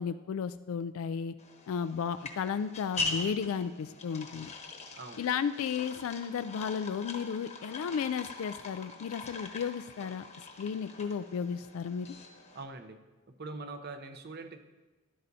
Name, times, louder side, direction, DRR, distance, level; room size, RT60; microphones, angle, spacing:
voice 1, 0.0-1.4 1.7-4.5 5.2-10.2 10.6-12.1, left 7 dB, 70° left, 11 dB, 0.3 m, -34 dB
sound 1, 1.4-12.6, left 3 dB, 30° left, 1.0 m, -42 dB
voice 2, 12.5-13.0 13.4-14.6, right 3 dB, 50° right, 8 dB, 0.7 m, -42 dB
12.5 x 11.0 x 2.7 m, 1.2 s
head